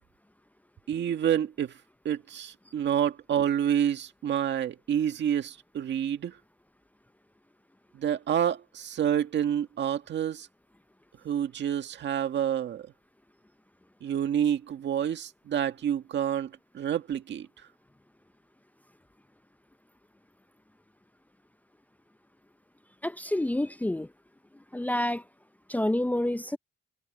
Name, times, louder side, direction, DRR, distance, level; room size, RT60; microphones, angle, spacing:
voice 1, 0.9-1.8 2.1-6.4 7.9-10.5 11.2-12.9 14.0-17.5, right 9 dB, 65° right, 1.9 m, -28 dB
voice 2, 23.0-24.1 24.7-25.2 25.7-26.6, left 1 dB, 10° left, 0.6 m, -28 dB
cardioid pair, 90°, 20 cm